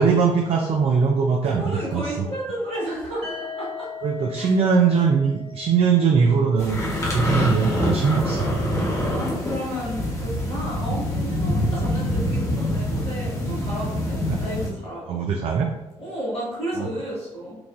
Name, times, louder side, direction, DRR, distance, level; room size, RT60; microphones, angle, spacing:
voice 1, 0.0-2.1 4.0-6.8 7.1-8.5 10.9-11.0 14.3-14.4 15.1-15.7 16.7-16.9, right 5 dB, 45° right, 1 dB, 0.4 m, -21 dB
voice 2, 1.4-3.9 4.3-4.6 7.1-7.7 8.8-15.2 16.0-17.6, equal, 85° left, -8 dB, 1.1 m, -32 dB
sound 1, 3.2-7.1, left 5 dB, 65° right, 1.2 m, -39 dB
sound 2, 6.6-14.7, left 1 dB, 20° left, 1.0 m, -25 dB
4.5 x 2.4 x 2.5 m, 0.95 s
figure-of-eight pair, 40°, 14 cm